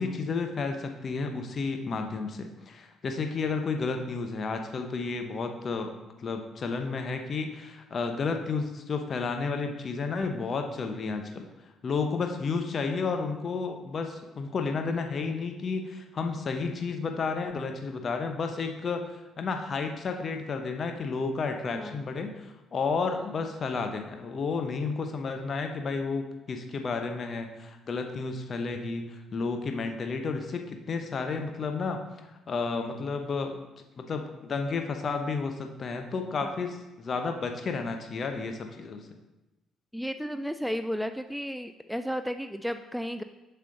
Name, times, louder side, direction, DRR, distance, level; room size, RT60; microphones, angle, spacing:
voice 1, 0.0-11.5 11.8-32.0 32.5-33.6 34.0-39.1, left 4 dB, 45° left, 5 dB, 0.9 m, -32 dB
voice 2, 39.9-43.2, equal, ahead, 9 dB, 0.4 m, -33 dB
7.4 x 5.7 x 3.9 m, 1.0 s
hypercardioid pair, 45°, 0 cm